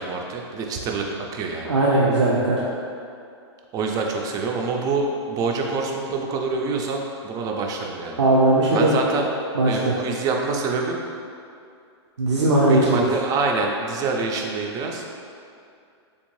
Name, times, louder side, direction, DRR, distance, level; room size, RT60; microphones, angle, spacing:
voice 1, 0.0-1.8 3.7-8.2 8.7-9.3 9.7-11.0 12.7-15.0, right 4 dB, 25° right, 1 dB, 0.4 m, -26 dB
voice 2, 1.6-2.6 8.2-9.0 9.5-10.0 12.2-13.0, right 2 dB, 85° right, -5 dB, 0.5 m, -18 dB
3.4 x 2.6 x 3.1 m, 2.4 s
hypercardioid pair, 125°, 14 cm